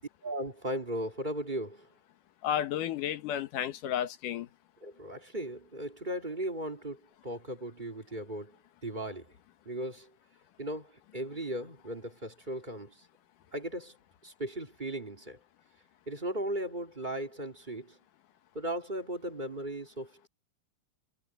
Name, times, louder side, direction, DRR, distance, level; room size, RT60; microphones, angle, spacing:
voice 1, 0.2-1.9 4.8-9.3 9.6-10.1 10.6-13.0 13.5-14.0 14.2-15.4 16.1-18.0 18.5-20.3, right 1 dB, 15° right, 2.5 m, -37 dB
voice 2, 2.4-4.5, left 10 dB, 85° left, 2.9 m, -32 dB
omnidirectional pair, 3.7 m